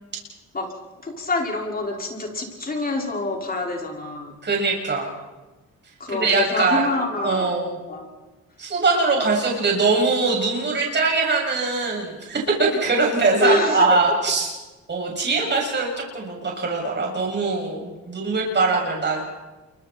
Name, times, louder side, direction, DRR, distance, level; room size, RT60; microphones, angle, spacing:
voice 1, 1.0-4.3 6.0-7.5 7.9-8.1 13.4-13.9 14.4-14.5, left 2 dB, 30° left, 0 dB, 5.6 m, -26 dB
voice 2, 4.4-5.1 6.1-6.9 7.2-7.8 8.6-14.5 14.9-15.9 16.1-19.3, right 3 dB, 35° right, -1 dB, 7.5 m, -22 dB
28.5 x 24.5 x 4.6 m, 1.2 s
cardioid pair, 90°, 30 cm